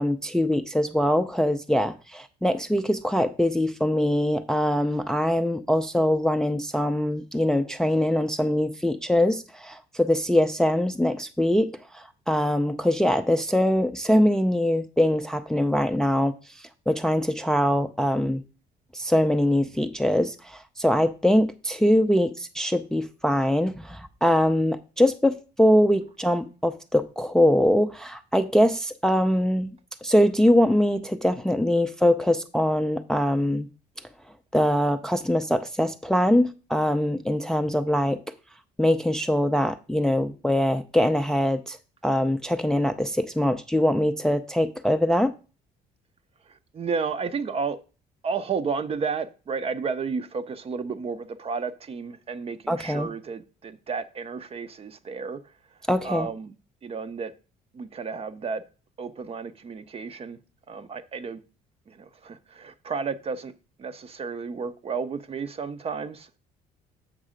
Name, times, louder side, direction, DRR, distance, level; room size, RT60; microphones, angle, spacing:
voice 1, 0.0-16.3 16.9-18.4 18.9-29.7 30.0-33.7 34.5-38.2 38.8-41.8 42.0-45.3 52.7-53.1 55.9-56.3, left 1 dB, 5° left, 0.4 m, -23 dB
voice 2, 46.5-47.8 48.2-55.4 56.0-56.5 56.8-57.3 57.7-58.6 59.0-60.4 60.7-61.4 61.9-63.5 63.8-66.4, right 5 dB, 35° right, 0.7 m, -32 dB
7.4 x 5.3 x 5.0 m
cardioid pair, 110°, 17 cm